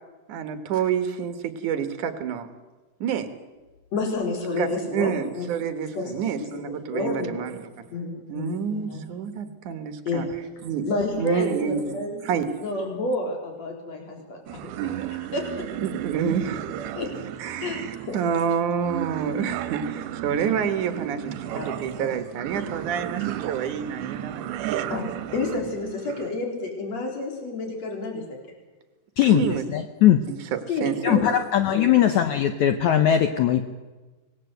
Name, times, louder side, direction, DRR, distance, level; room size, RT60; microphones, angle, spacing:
voice 1, 0.3-2.5 3.0-3.3 4.6-7.7 8.3-10.3 10.6-10.9 11.2-12.5 15.8-16.7 17.4-24.9 29.2-29.6 30.3-31.3, right 7 dB, 60° right, 9 dB, 2.5 m, -28 dB
voice 2, 3.9-5.1 5.3-5.5 5.9-6.0 6.4-7.4 7.9-9.0 10.0-10.4 10.9-12.2 12.6-14.4 15.3-15.6 17.0-17.1 17.6-17.8 18.1-18.2 21.5-22.1 24.9-25.1 25.3-28.2 30.7-31.3 31.7-31.8, left 2 dB, 40° left, 2 dB, 5.0 m, -29 dB
sound 1, 14.5-26.4, right 12 dB, 75° right, 2.8 m, -34 dB
voice 3, 29.7-30.3 31.0-33.7, left 10 dB, 85° left, 8 dB, 1.6 m, -20 dB
25.5 x 19.5 x 8.0 m, 1.2 s
omnidirectional pair, 4.7 m